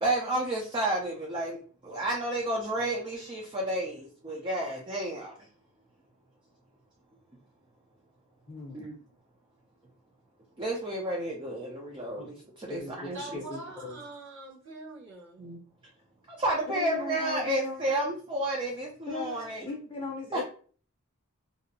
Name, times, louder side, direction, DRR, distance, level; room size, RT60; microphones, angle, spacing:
voice 1, 0.0-5.3 8.7-8.9 10.6-13.4 15.4-15.6 16.3-19.6 20.3-20.4, right 1 dB, 20° right, 0.4 m, -31 dB
voice 2, 8.5-8.8 12.2-12.3 12.7-14.0 16.7-18.0 19.1-20.4, left 3 dB, 25° left, 0.6 m, -38 dB
voice 3, 13.1-15.6, right 2 dB, 60° right, 1.0 m, -44 dB
2.6 x 2.0 x 2.6 m
head